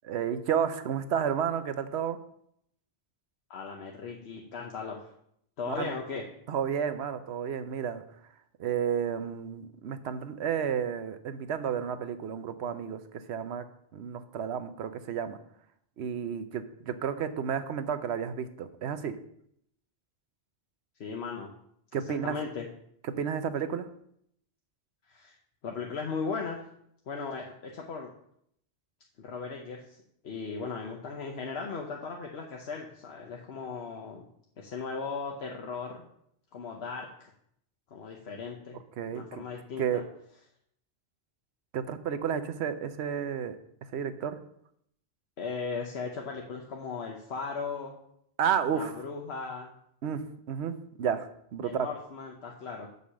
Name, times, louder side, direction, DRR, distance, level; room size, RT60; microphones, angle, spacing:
voice 1, 0.0-2.2 5.6-5.9 6.5-8.0 8.6-13.6 13.9-15.4 16.0-19.2 21.9-22.3 23.2-23.9 39.0-39.2 39.8-40.0 41.7-43.6 43.9-44.4 48.4-48.9 50.0-50.2 50.5-51.9, right 8 dB, 85° right, 11 dB, 1.0 m, -31 dB
voice 2, 3.5-5.1 5.6-6.2 21.0-21.5 22.2-22.6 25.1-25.4 25.6-26.6 27.1-28.1 29.2-30.0 30.2-34.2 34.6-36.1 36.5-37.3 37.9-38.8 39.1-40.0 45.4-48.0 48.7-49.7 51.6-52.9, left 4 dB, 80° left, 0 dB, 1.1 m, -37 dB
6.4 x 5.4 x 7.1 m, 0.71 s
omnidirectional pair, 1.1 m